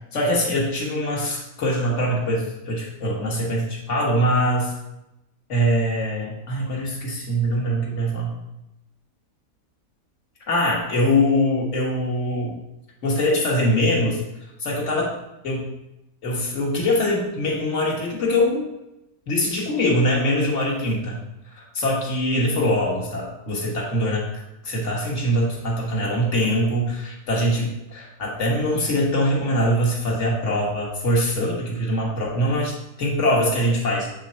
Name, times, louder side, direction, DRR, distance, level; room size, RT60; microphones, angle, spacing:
voice 1, 0.1-4.7 5.5-8.4 10.5-12.6 13.0-14.2 14.6-15.2 15.4-15.7 16.2-18.7 19.3-21.2 21.5-24.2 24.6-32.7 33.0-34.1, equal, 55° left, -3 dB, 1.8 m, -23 dB
7.4 x 3.9 x 4.3 m, 0.91 s
omnidirectional pair, 1.6 m